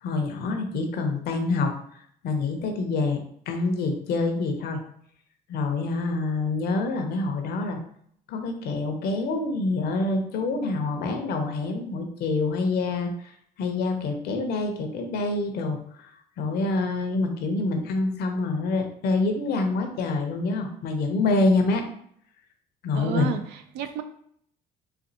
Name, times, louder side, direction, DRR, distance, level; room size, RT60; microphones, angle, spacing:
voice 1, 0.0-1.7 2.2-3.2 3.5-4.8 5.5-7.8 8.3-13.3 13.6-16.1 16.4-21.8 22.8-23.4, left 3 dB, 70° left, 4 dB, 0.7 m, -26 dB
voice 2, 22.9-24.0, right 9 dB, 90° right, 9 dB, 0.4 m, -31 dB
4.1 x 2.3 x 2.7 m, 0.65 s
cardioid pair, 110°, 17 cm